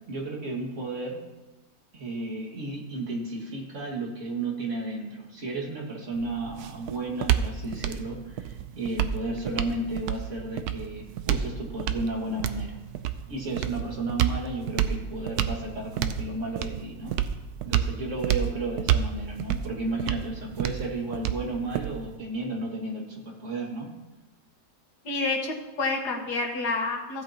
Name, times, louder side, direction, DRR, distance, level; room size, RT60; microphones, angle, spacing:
voice 1, 0.1-1.2 1.9-12.8 13.3-17.2 17.6-23.9, right 2 dB, 50° right, -2 dB, 2.3 m, -33 dB
sound 1, 6.1-22.2, right 10 dB, 75° right, 1.1 m, -30 dB
voice 2, 25.1-27.2, left 3 dB, 90° left, 1 dB, 2.0 m, -29 dB
15.5 x 8.4 x 2.9 m, 1.1 s
omnidirectional pair, 1.7 m